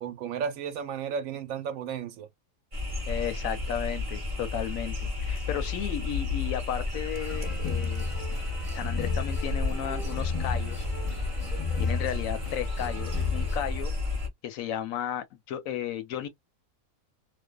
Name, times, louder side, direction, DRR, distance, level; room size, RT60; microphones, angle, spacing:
voice 1, 0.0-2.3, right 7 dB, 70° right, 0.9 m, -33 dB
sound 1, 2.7-14.3, left 2 dB, 35° right, 0.6 m, -32 dB
voice 2, 3.1-5.0 5.2-8.1 8.7-10.9 11.8-13.9 14.4-16.3, left 10 dB, 70° left, 0.9 m, -34 dB
sound 2, 7.1-13.6, left 5 dB, 30° left, 0.6 m, -34 dB
2.5 x 2.2 x 2.2 m
omnidirectional pair, 1.5 m